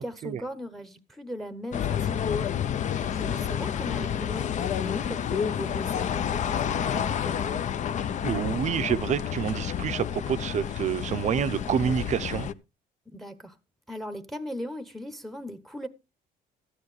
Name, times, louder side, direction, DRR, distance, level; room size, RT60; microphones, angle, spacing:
voice 1, 0.0-2.2 3.1-7.6 13.1-13.6 13.9-15.9, equal, ahead, 1.0 m, -38 dB
sound 1, 1.7-12.5, left 8 dB, 45° left, 0.7 m, -29 dB
voice 2, 8.2-12.5, right 8 dB, 45° right, 0.6 m, -28 dB
13.5 x 9.6 x 3.2 m
cardioid pair, 110°, 17 cm